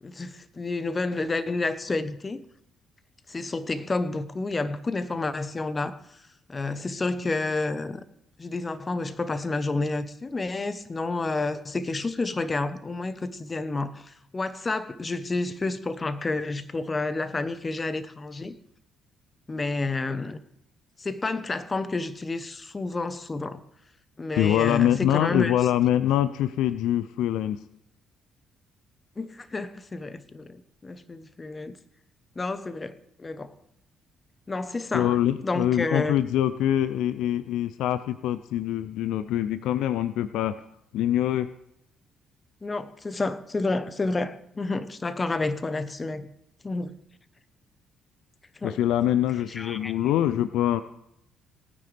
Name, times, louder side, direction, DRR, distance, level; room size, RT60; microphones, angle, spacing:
voice 1, 0.0-2.4 3.3-6.2 6.5-8.0 8.4-18.5 19.5-20.4 21.0-23.6 24.2-25.6 29.2-31.8 32.4-33.5 34.5-35.2 35.4-36.2 42.6-46.3 46.6-46.9 48.6-48.8 49.5-49.9, left 3 dB, 30° left, 1.0 m, -30 dB
voice 2, 24.4-27.6 34.9-40.6 40.9-41.5 48.6-50.8, left 11 dB, 75° left, 0.4 m, -24 dB
18.5 x 9.4 x 3.4 m
hypercardioid pair, 50°, 0 cm